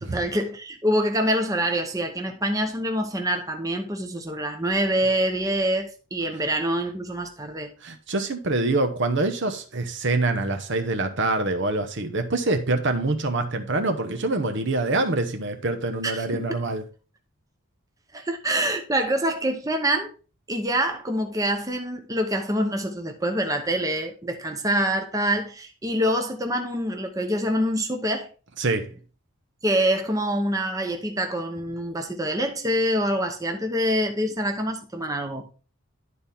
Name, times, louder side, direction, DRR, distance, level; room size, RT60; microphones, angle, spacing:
voice 1, 0.0-7.7 16.0-16.4 18.1-20.1 20.5-28.3 29.6-35.5, right 1 dB, 15° right, 0.8 m, -25 dB
voice 2, 7.8-16.8 28.6-28.9, right 2 dB, 55° right, 0.9 m, -25 dB
11.0 x 4.2 x 3.5 m
head